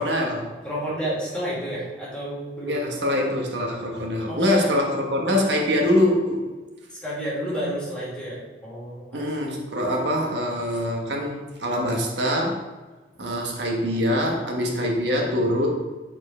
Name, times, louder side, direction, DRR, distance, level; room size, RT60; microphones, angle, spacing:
voice 1, 0.0-0.5 2.6-6.5 9.1-12.6 13.2-15.7, left 1 dB, 80° right, 0 dB, 1.2 m, -24 dB
voice 2, 0.6-2.9 4.3-4.7 6.9-9.3, equal, 5° left, -7 dB, 2.3 m, -31 dB
7.5 x 4.5 x 4.3 m, 1.2 s
head